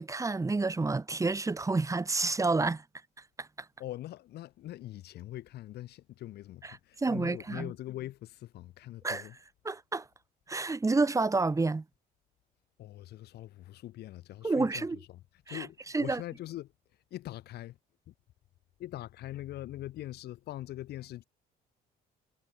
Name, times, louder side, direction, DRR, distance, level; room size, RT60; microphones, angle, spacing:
voice 1, 0.0-2.8 3.4-3.5 7.0-7.7 9.0-9.2 9.7-10.1 10.5-11.8 14.4-15.0 15.5-15.6 15.9-16.2, right 3 dB, 20° right, 3.7 m, -29 dB
voice 2, 3.8-9.4 12.8-16.7 17.1-17.8 18.1-18.2 18.8-21.2, left 14 dB, 75° left, 7.1 m, -42 dB
cardioid pair, 110°, 17 cm